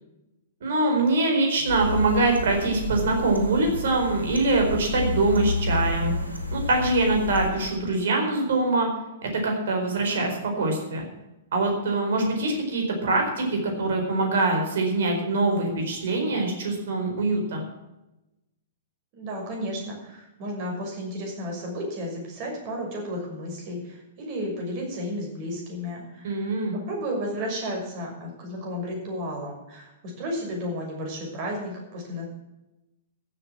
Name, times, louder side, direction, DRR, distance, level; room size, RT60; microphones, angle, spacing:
voice 1, 0.6-6.1 6.5-8.9 9.2-11.1 11.5-17.6 26.2-26.7, right 2 dB, 60° right, 2 dB, 4.6 m, -24 dB
sound 1, 1.7-7.5, left 1 dB, 85° right, 2.2 m, -30 dB
voice 2, 19.1-32.2, equal, 40° right, 0 dB, 6.3 m, -33 dB
15.0 x 7.9 x 7.6 m, 0.97 s
figure-of-eight pair, 110°, 0 cm